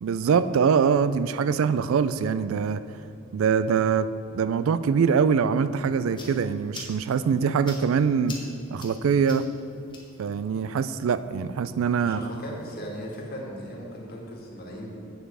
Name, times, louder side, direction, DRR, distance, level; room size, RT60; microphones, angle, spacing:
voice 1, 0.0-2.8 3.3-4.1 4.3-8.4 8.7-9.5 10.2-12.2, right 6 dB, 75° right, 13 dB, 0.3 m, -23 dB
sound 1, 5.8-13.2, left 2 dB, 25° left, 1.4 m, -48 dB
voice 2, 12.0-14.9, equal, 50° left, -2 dB, 1.7 m, -38 dB
8.0 x 6.8 x 4.9 m, 2.9 s
head